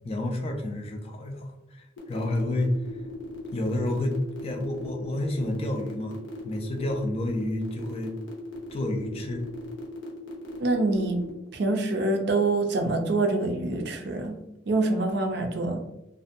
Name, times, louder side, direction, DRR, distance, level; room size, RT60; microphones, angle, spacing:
voice 1, 0.0-2.7 3.5-6.2 6.4-8.1 8.7-9.4, left 1 dB, 30° left, 3 dB, 0.3 m, -30 dB
sound 1, 2.0-11.3, left 2 dB, 70° left, 0.6 m, -40 dB
voice 2, 10.6-11.2 11.5-14.4 14.7-15.8, right 2 dB, 60° right, 4 dB, 0.4 m, -25 dB
2.5 x 2.2 x 2.5 m, 0.90 s
head